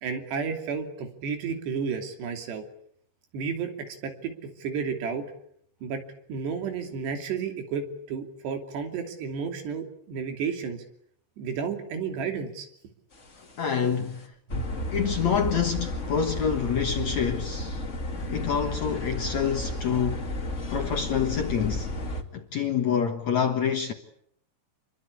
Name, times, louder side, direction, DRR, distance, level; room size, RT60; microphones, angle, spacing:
voice 1, 0.0-2.7 3.3-5.3 5.8-6.0 6.3-10.8 11.4-12.7 13.9-14.1 14.5-14.6, right 6 dB, 70° right, 5.0 m, -32 dB
sound 1, 13.3-13.6 14.0-14.1 14.5-22.2, left 1 dB, 30° left, 1.4 m, -32 dB
voice 2, 13.6-14.3 14.9-17.8 18.3-20.3 20.7-21.9 22.3-23.9, left 7 dB, 60° left, 2.0 m, -27 dB
28.0 x 22.5 x 8.4 m
omnidirectional pair, 5.0 m